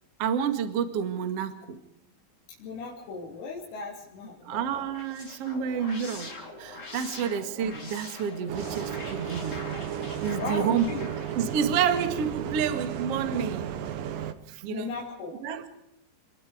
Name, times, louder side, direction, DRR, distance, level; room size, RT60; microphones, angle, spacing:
voice 1, 0.2-1.8 4.4-6.3 6.6-9.6 10.2-10.9 11.3-13.7 14.5-14.9 15.4-15.8, right 7 dB, 60° right, 8 dB, 1.6 m, -29 dB
voice 2, 2.6-4.9 7.2-7.4 10.3-11.1 14.7-15.3, left 4 dB, 85° left, -2 dB, 5.8 m, -37 dB
sound 1, 4.7-12.8, left 2 dB, 25° left, 3.5 m, -44 dB
Bus, 8.5-14.3, right 9 dB, 75° right, 2.0 m, -34 dB
27.0 x 21.0 x 5.1 m, 0.88 s
omnidirectional pair, 5.9 m